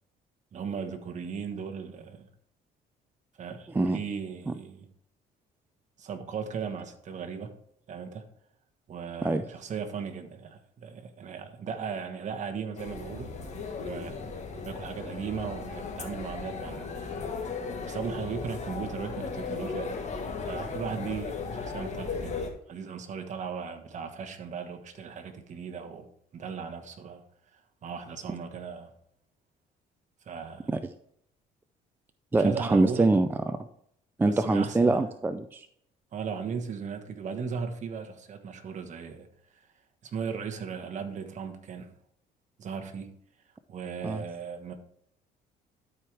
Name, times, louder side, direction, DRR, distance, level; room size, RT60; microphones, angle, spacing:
voice 1, 0.5-2.3 3.4-4.8 6.0-7.5 7.9-8.2 8.9-13.3 13.8-17.0 17.9-19.9 20.5-22.4 22.7-26.1 26.3-27.2 27.8-28.9 30.3-30.7 32.3-33.1 34.2-35.0 36.1-39.3 40.0-41.9 42.6-43.1 43.7-44.7, right 6 dB, 45° right, 1.2 m, -37 dB
sound 1, 12.8-22.5, left 4 dB, 40° left, 1.5 m, -36 dB
voice 2, 32.3-33.3 33.6-33.7 34.2-35.7 44.0-44.2, right 2 dB, 10° right, 0.4 m, -24 dB
12.5 x 4.7 x 3.4 m
cardioid pair, 110°, 17 cm